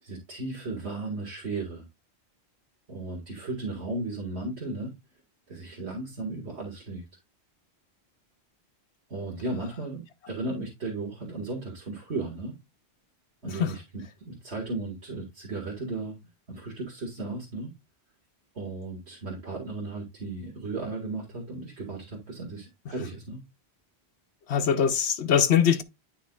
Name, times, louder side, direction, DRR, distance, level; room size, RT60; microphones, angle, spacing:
voice 1, 0.0-1.9 2.9-4.9 5.5-7.1 9.1-12.6 13.4-16.2 16.5-17.7 18.5-23.4, right 2 dB, 80° right, 2.3 m, -35 dB
voice 2, 24.5-25.8, left 8 dB, 80° left, 1.1 m, -22 dB
10.5 x 5.7 x 2.4 m
omnidirectional pair, 1.1 m